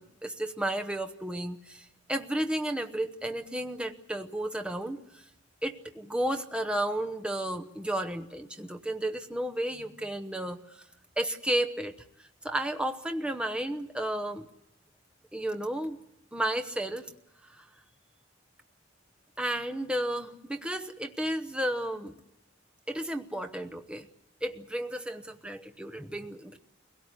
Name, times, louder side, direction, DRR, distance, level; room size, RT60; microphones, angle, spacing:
voice 1, 0.0-5.2 5.6-10.8 11.2-11.9 12.2-14.5 15.3-16.0 16.3-17.1 17.5-17.7 19.4-22.1 22.9-24.1 24.4-26.6, right 1 dB, 5° right, 5 dB, 0.8 m, -33 dB
23.0 x 17.0 x 9.5 m, 0.83 s
head